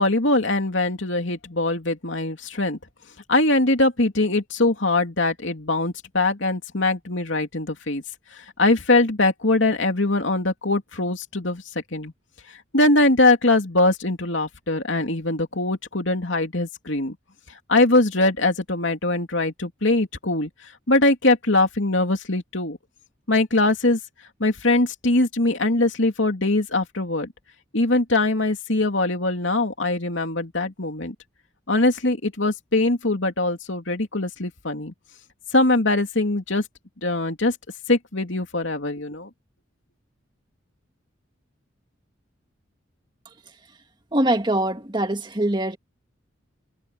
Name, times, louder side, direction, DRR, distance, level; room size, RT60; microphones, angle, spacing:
voice 1, 0.0-2.8 3.3-8.0 8.3-11.6 11.9-12.1 12.7-17.1 17.7-20.5 20.9-22.8 23.3-24.0 24.4-27.3 27.7-31.1 31.7-34.9 35.5-36.6 37.0-37.6 37.9-39.3, left 2 dB, 70° left, 3.0 m, -22 dB
voice 2, 44.1-45.8, right 1 dB, 25° right, 2.3 m, -23 dB
head